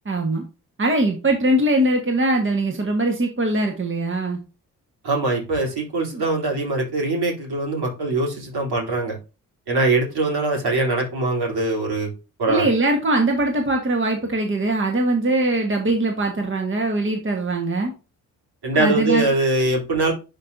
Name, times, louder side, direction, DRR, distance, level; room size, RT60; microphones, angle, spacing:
voice 1, 0.0-0.4 0.8-4.4 6.1-6.2 12.5-17.9 18.7-19.3, right 1 dB, 30° right, 3 dB, 1.5 m, -21 dB
voice 2, 5.0-9.2 9.7-12.1 12.4-12.7 18.6-20.1, right 2 dB, 60° right, -1 dB, 3.4 m, -22 dB
10.5 x 4.0 x 2.7 m, 0.30 s
hypercardioid pair, 45°, 43 cm